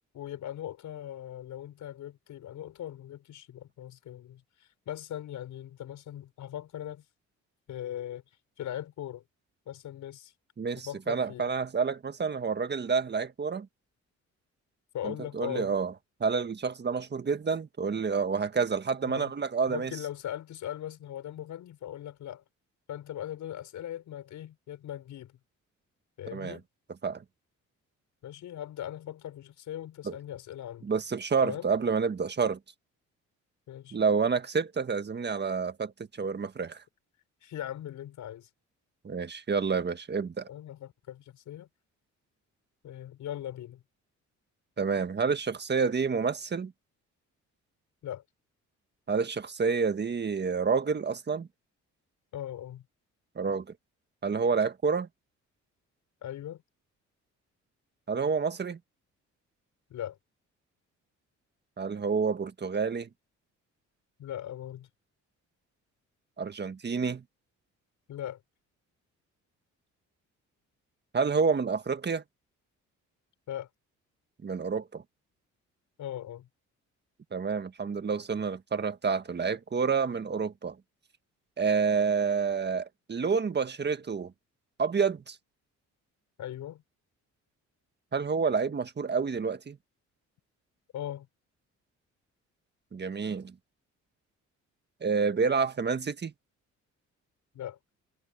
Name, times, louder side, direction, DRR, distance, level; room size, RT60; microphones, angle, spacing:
voice 1, 0.1-7.0 7.7-8.2 8.6-9.2 9.7-10.3 10.8-11.5 14.9-15.7 19.0-19.3 19.7-22.4 22.9-25.4 26.2-26.6 28.2-30.9 31.4-31.7 33.7-34.0 37.4-38.5 40.5-41.7 42.8-43.8 48.0-48.2 52.3-52.8 56.2-56.6 59.9-60.2 64.2-64.9 68.1-68.4 73.5-73.7 76.0-76.5 86.4-86.8 90.9-91.3 97.5-97.8, left 11 dB, 75° left, 6.5 m, -39 dB
voice 2, 10.6-13.7 15.0-15.9 16.2-19.9 26.3-26.6 27.0-27.2 30.0-30.1 30.8-32.6 33.9-35.9 36.2-36.8 39.0-40.5 44.8-46.7 49.1-51.5 53.3-53.6 54.2-55.1 58.1-58.8 61.8-63.1 66.4-67.2 71.1-72.2 74.4-75.0 77.3-80.7 81.6-84.3 84.8-85.4 88.1-89.8 92.9-93.5 95.0-96.3, right 5 dB, 35° right, 1.6 m, -29 dB
cardioid pair, 90°, 30 cm